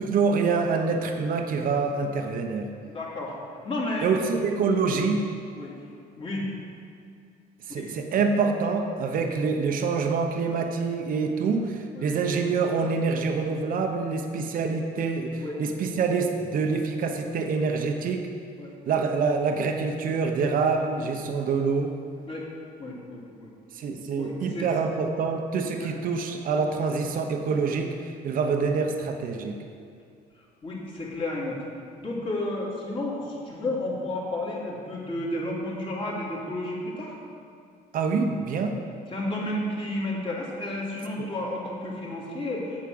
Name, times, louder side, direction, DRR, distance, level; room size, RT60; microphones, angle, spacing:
voice 1, 0.1-2.7 4.0-5.2 7.7-18.3 18.9-21.9 23.7-27.9 28.2-29.6 37.9-38.8 41.2-41.3, right 4 dB, 55° right, 4 dB, 1.0 m, -26 dB
voice 2, 2.9-3.4 3.6-4.2 5.6-5.7 6.2-6.5 7.7-7.9 11.4-11.6 11.9-12.1 15.4-15.6 18.6-18.7 22.3-22.5 22.8-23.5 24.2-24.7 25.8-25.9 30.4-31.6 32.0-37.2 39.1-42.8, left 1 dB, 30° left, -4 dB, 2.7 m, -32 dB
8.5 x 6.3 x 7.9 m, 2.3 s
cardioid pair, 110°, 17 cm